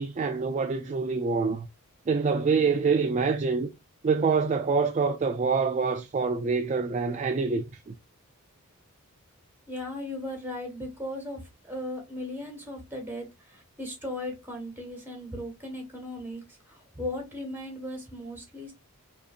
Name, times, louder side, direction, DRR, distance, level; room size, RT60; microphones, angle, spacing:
voice 1, 0.0-1.7 2.1-3.7 4.0-7.9, right 5 dB, 30° right, 0.3 m, -26 dB
voice 2, 9.7-16.4 16.7-18.7, left 1 dB, 10° right, 1.5 m, -37 dB
4.9 x 2.7 x 2.4 m
head